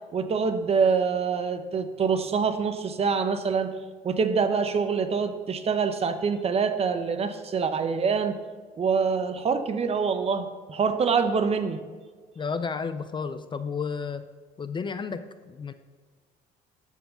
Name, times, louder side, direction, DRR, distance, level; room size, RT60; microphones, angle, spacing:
voice 1, 0.1-3.7 4.0-8.4 8.8-11.8, right 5 dB, 35° right, 9 dB, 0.8 m, -25 dB
voice 2, 12.4-14.3 14.6-15.7, left 5 dB, 30° left, 11 dB, 0.4 m, -32 dB
13.0 x 4.6 x 5.6 m, 1.5 s
cardioid pair, 110°, 17 cm